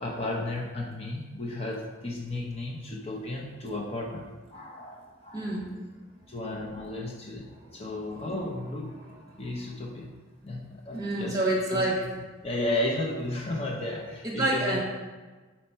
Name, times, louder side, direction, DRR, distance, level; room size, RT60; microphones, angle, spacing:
voice 1, 0.0-5.5 6.3-7.5 7.7-8.9 9.4-10.1 10.4-11.4 11.7-11.8 12.4-14.8, left 2 dB, 30° left, -2 dB, 0.7 m, -33 dB
voice 2, 5.3-5.7 7.5-7.9 8.2-8.3 8.9-9.5 10.9-11.9 14.2-14.8, right 2 dB, 20° right, -3 dB, 1.3 m, -29 dB
4.4 x 4.2 x 5.5 m, 1.3 s
head